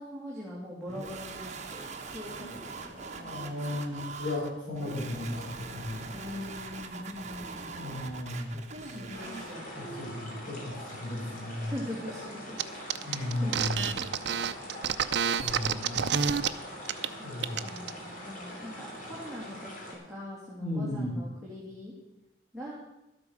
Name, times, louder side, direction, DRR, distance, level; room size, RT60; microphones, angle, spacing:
voice 1, 0.0-4.0 6.1-8.0 8.7-10.1 11.0-11.4 11.7-12.6 13.0-14.1 15.6-16.3 17.2-17.3 17.6-21.9 22.5-22.8, left 1 dB, ahead, -7 dB, 2.5 m, -43 dB
sound 1, 0.9-9.6, right 4 dB, 40° right, 1.1 m, -42 dB
voice 2, 2.7-6.1 7.7-8.5 9.7-11.8 13.0-13.9 15.4-16.1 17.2-17.7 20.6-21.1, left 1 dB, 65° left, -8 dB, 5.3 m, -35 dB
sound 2, 9.1-20.0, equal, 45° left, 3.4 m, -43 dB
sound 3, 12.6-12.7 12.9-16.5 16.8-17.1 17.4-17.9, right 7 dB, 65° right, 0.5 m, -28 dB
12.5 x 8.5 x 6.3 m, 0.95 s
head